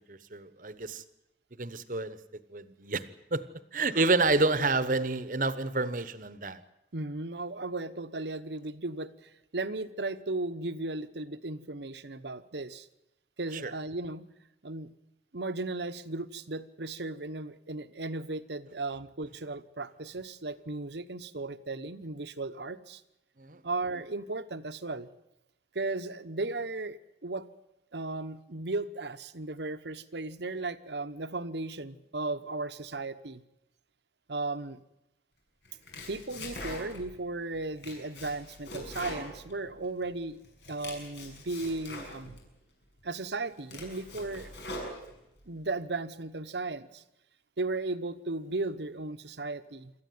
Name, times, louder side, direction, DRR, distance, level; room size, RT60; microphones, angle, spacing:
voice 1, 0.1-1.0 1.6-2.2 2.5-3.0 3.3-3.4 3.7-6.6 13.5-13.7 23.4-23.6, right 3 dB, 45° right, 1.1 m, -29 dB
voice 2, 6.9-12.9 13.4-14.2 14.6-14.9 15.3-23.0 23.6-25.1 25.7-27.5 27.9-33.4 34.3-34.8 35.9-40.4 40.7-42.4 43.0-44.5 45.5-47.0 47.6-49.9, right 2 dB, 70° right, 1.0 m, -36 dB
Domestic sounds home sounds, 35.6-37.2 37.5-40.1 40.4-42.4 43.0-43.1 43.5-45.4, left 1 dB, 75° left, 6.6 m, -43 dB
26.5 x 14.0 x 9.5 m
head